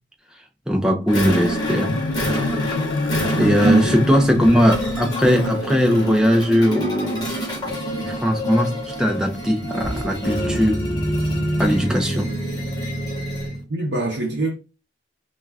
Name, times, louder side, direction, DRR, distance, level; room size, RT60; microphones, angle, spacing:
voice 1, 0.7-2.0 3.4-7.3 8.0-10.8 11.6-12.3, equal, 5° right, 0.4 m, -19 dB
Marimba xylophone, 1.1-6.3, left 3 dB, 85° left, 0.3 m, -28 dB
sound 1, 1.1-13.6, equal, 20° left, 0.9 m, -26 dB
voice 2, 3.3-4.1 13.7-14.5, right 2 dB, 65° right, 0.6 m, -22 dB
2.3 x 2.1 x 3.3 m
head